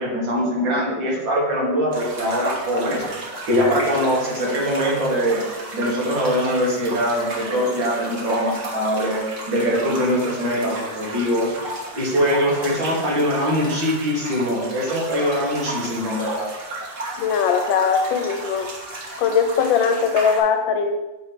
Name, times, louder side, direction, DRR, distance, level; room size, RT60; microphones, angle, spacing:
voice 1, 0.0-11.5 11.9-16.5, equal, 85° right, -4 dB, 2.6 m, -22 dB
sound 1, 1.9-20.4, right 2 dB, 45° right, 1.5 m, -33 dB
voice 2, 17.2-18.7 19.2-21.0, left 6 dB, 85° left, 6 dB, 1.5 m, -20 dB
8.1 x 3.1 x 5.0 m, 1.1 s
omnidirectional pair, 2.0 m